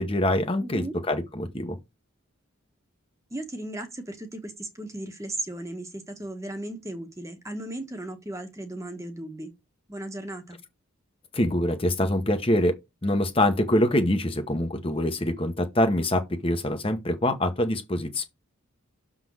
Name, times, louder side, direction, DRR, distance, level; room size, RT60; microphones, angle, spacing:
voice 1, 0.0-1.8 11.3-12.7 13.0-18.2, left 1 dB, 25° left, 0.9 m, -25 dB
voice 2, 0.6-0.9 3.3-9.5 9.9-10.6, right 1 dB, 15° right, 1.1 m, -36 dB
6.6 x 3.9 x 6.2 m
head